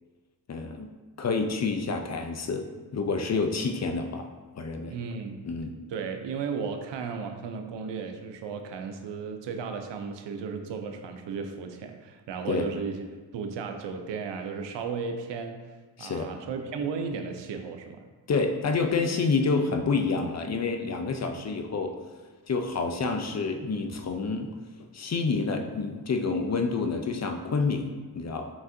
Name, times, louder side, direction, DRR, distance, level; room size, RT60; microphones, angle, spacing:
voice 1, 0.5-0.9 1.2-2.7 2.9-4.3 4.6-4.9 5.5-5.7 12.5-12.7 16.0-16.3 18.3-22.0 22.5-24.5 24.9-28.5, left 4 dB, 40° left, 5 dB, 0.5 m, -28 dB
voice 2, 4.9-5.5 5.9-15.6 16.0-18.0, right 5 dB, 90° right, 6 dB, 0.6 m, -35 dB
5.2 x 3.5 x 2.6 m, 1.3 s
cardioid pair, 60°, 42 cm